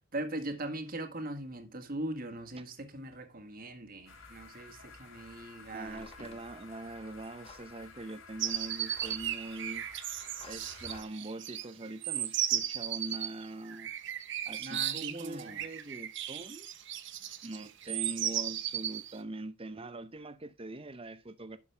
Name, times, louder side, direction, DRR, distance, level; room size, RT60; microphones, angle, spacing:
voice 1, 0.1-6.4 14.6-15.6, right 1 dB, 45° right, 1.7 m, -40 dB
sound 1, 4.1-11.0, left 4 dB, 80° left, 3.0 m, -53 dB
voice 2, 5.7-9.9 10.4-13.9 14.5-16.7 17.4-21.6, right 2 dB, 25° right, 0.8 m, -43 dB
sound 2, 5.9-6.4 7.4-7.7 8.8-9.4 10.2-11.1, left 3 dB, 30° left, 1.4 m, -54 dB
sound 3, 8.4-19.2, right 11 dB, 60° right, 1.0 m, -36 dB
11.0 x 6.4 x 3.4 m
head